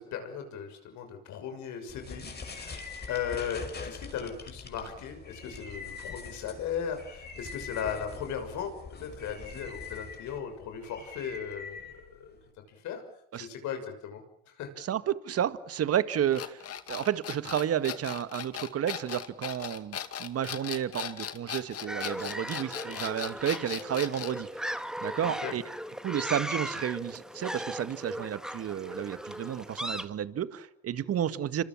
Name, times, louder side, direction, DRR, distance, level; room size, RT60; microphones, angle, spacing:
voice 1, 0.0-8.7 9.0-11.9 12.1-12.4 12.7-13.0 13.4-14.2 14.6-14.9 25.2-25.5 27.5-27.6, left 8 dB, 65° left, 6 dB, 6.4 m, -37 dB
sound 1, 1.9-12.5, left 4 dB, 30° left, 5.9 m, -43 dB
voice 2, 14.8-25.6 26.0-31.6, right 10 dB, 50° right, 13 dB, 1.8 m, -31 dB
sound 2, 16.3-24.4, left 9 dB, 50° left, 2.3 m, -38 dB
sound 3, 21.9-30.1, equal, ahead, 2.0 m, -37 dB
27.5 x 25.0 x 7.3 m, 0.71 s
hypercardioid pair, 70°, 31 cm